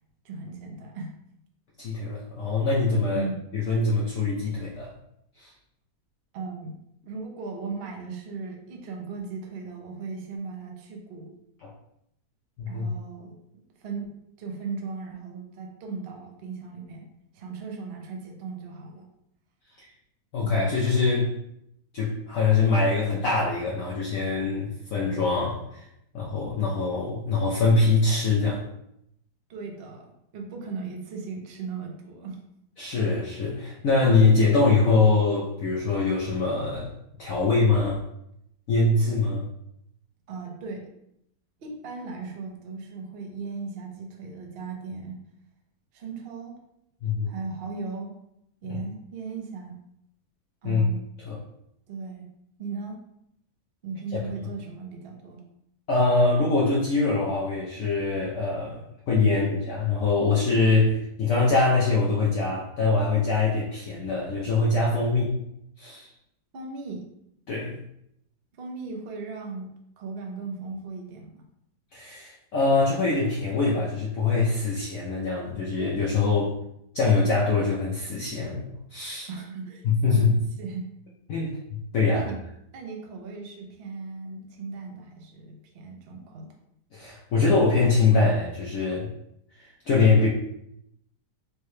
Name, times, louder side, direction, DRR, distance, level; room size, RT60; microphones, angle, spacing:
voice 1, 0.2-1.2 3.1-3.4 6.3-6.8 7.0-11.3 12.7-14.1 14.4-17.1 17.3-19.1 20.4-20.5 29.5-32.4 40.3-40.9 41.6-45.2 45.9-46.5 47.3-48.1 48.6-49.8 50.6-51.0 51.9-52.3 52.6-53.0 53.8-55.4 66.5-67.1 68.6-71.4 79.3-79.8 80.1-80.9 82.1-82.4 82.7-86.5, right 4 dB, 60° right, 2 dB, 0.6 m, -37 dB
voice 2, 1.8-3.3 3.5-4.9 5.4-5.5 11.6-11.7 12.6-12.9 20.3-21.3 21.9-25.9 26.1-28.6 32.8-36.9 37.2-38.0 38.7-39.5 47.0-47.3 48.6-48.8 50.6-50.8 51.3-51.4 55.9-65.4 65.8-66.1 67.5-67.8 71.9-76.6 76.9-79.3 79.8-80.4 81.3-82.3 86.9-89.1 89.6-90.3, left 3 dB, 65° left, -4 dB, 0.9 m, -23 dB
4.6 x 2.2 x 3.1 m, 0.78 s
omnidirectional pair, 1.8 m